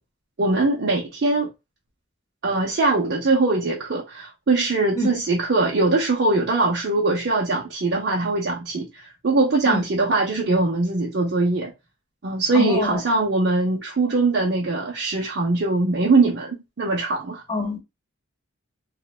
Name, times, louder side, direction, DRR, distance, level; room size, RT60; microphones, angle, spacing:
voice 1, 0.4-1.5 2.4-11.7 12.2-17.4, right 3 dB, 55° right, 0.5 m, -22 dB
voice 2, 12.5-13.0 17.5-17.8, left 2 dB, 20° left, 0.7 m, -25 dB
3.0 x 2.1 x 2.3 m
head